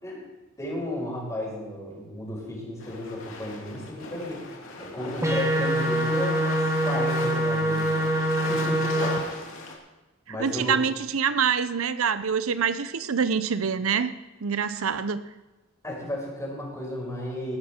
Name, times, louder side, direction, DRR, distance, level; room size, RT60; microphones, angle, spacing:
voice 1, 0.6-4.5 4.8-8.2 8.5-9.1 10.3-10.8 15.8-17.6, left 1 dB, 15° left, -3 dB, 5.0 m, -33 dB
sound 1, 2.8-9.7, left 2 dB, 70° left, 2.8 m, -38 dB
sound 2, 5.2-9.2, right 1 dB, 15° right, 1.5 m, -24 dB
voice 2, 10.3-14.1 14.4-15.2, right 6 dB, 90° right, 13 dB, 0.7 m, -25 dB
19.0 x 11.5 x 4.4 m, 1.1 s
head